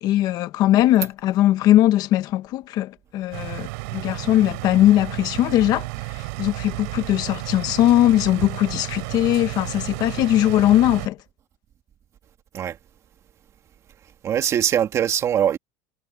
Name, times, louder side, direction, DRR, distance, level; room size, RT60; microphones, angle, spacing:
voice 1, 0.0-11.2, left 13 dB, 50° left, 1.2 m, -20 dB
sound 1, 3.3-11.1, right 28 dB, 80° right, 3.1 m, -32 dB
voice 2, 14.2-15.6, right 9 dB, 35° right, 2.2 m, -21 dB
supercardioid pair, 140°, 9 cm